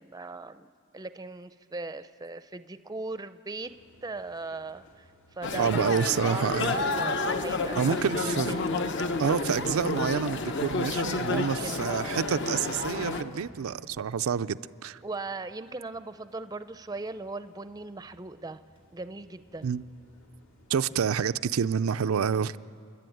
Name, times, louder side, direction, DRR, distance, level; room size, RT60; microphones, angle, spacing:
voice 1, 0.0-3.7 4.0-5.0 5.4-8.8 11.2-11.9 15.0-18.6 18.9-19.7, right 3 dB, 20° right, 12 dB, 0.5 m, -39 dB
sound 1, 3.6-21.0, equal, 75° left, 2.9 m, -53 dB
sound 2, 5.4-13.2, left 3 dB, 60° left, 1.0 m, -30 dB
voice 2, 5.6-6.8 7.8-8.6 9.2-15.0 19.6-19.8 20.7-22.6, right 7 dB, 85° right, 12 dB, 0.4 m, -28 dB
30.0 x 11.5 x 9.3 m, 2.5 s
head